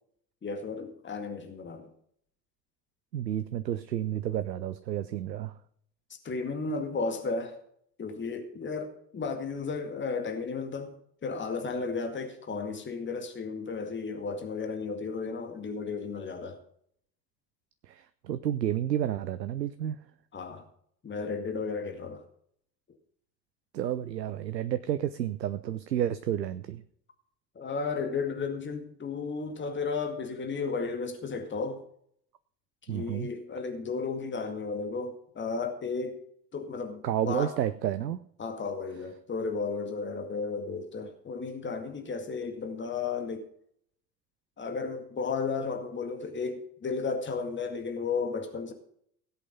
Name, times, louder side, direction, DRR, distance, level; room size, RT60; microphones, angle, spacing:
voice 1, 0.4-1.9 6.2-7.6 8.0-10.9 11.2-16.6 20.3-20.6 21.0-22.2 27.6-31.8 32.9-36.2 36.5-37.5 38.4-43.5 44.6-48.7, left 4 dB, 20° left, 6 dB, 2.1 m, -34 dB
voice 2, 3.1-5.6 17.8-20.0 23.7-26.8 32.9-33.3 37.0-38.2, right 11 dB, 80° right, 13 dB, 0.7 m, -31 dB
17.0 x 8.2 x 5.4 m, 0.66 s
figure-of-eight pair, 65°, 50 cm